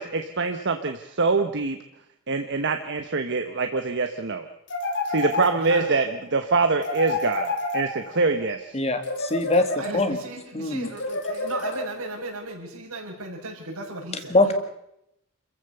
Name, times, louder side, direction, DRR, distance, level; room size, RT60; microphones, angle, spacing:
voice 1, 0.0-1.8 2.3-4.4 5.1-6.1 6.3-8.6, right 3 dB, 55° right, 6 dB, 1.1 m, -24 dB
sound 1, 4.7-6.0 6.8-8.3 9.0-10.2 11.0-12.2, left 2 dB, 55° left, 2.9 m, -30 dB
voice 2, 5.6-5.9 9.8-14.5, right 2 dB, 90° right, -2 dB, 6.6 m, -35 dB
voice 3, 8.7-10.2 10.5-10.9 14.3-14.5, left 2 dB, 30° left, 8 dB, 1.9 m, -23 dB
27.5 x 15.0 x 6.9 m, 0.82 s
head